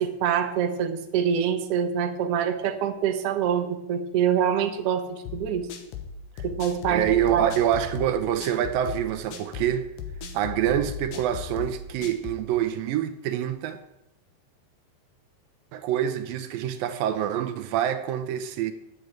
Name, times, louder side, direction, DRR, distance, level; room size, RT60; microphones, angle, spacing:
voice 1, 0.0-5.7 6.4-7.0 7.3-7.5, right 8 dB, 65° right, 1.6 m, -25 dB
sound 1, 5.3-12.5, left 6 dB, 70° left, 2.8 m, -37 dB
voice 2, 6.9-9.9 10.3-13.8 15.7-18.7, right 11 dB, 85° right, 2.4 m, -26 dB
9.4 x 7.8 x 8.7 m
omnidirectional pair, 4.2 m